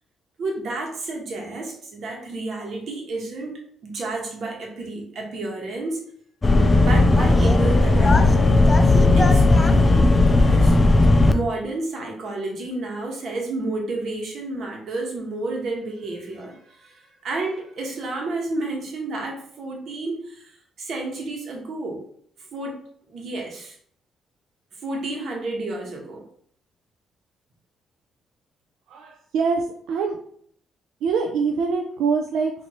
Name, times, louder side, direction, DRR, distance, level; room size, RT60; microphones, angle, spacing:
voice 1, 0.4-6.0 6.8-8.4 8.9-10.8 11.2-22.0 22.5-22.8 23.1-23.8 24.8-26.2, right 2 dB, 60° right, 0 dB, 1.1 m, -31 dB
sound 1, 6.4-11.3, left 2 dB, 25° left, 0.4 m, -16 dB
voice 2, 28.9-30.2 31.0-32.5, right 5 dB, 85° right, 2 dB, 0.3 m, -24 dB
4.3 x 2.6 x 3.0 m, 0.63 s
cardioid pair, 90°, 0 cm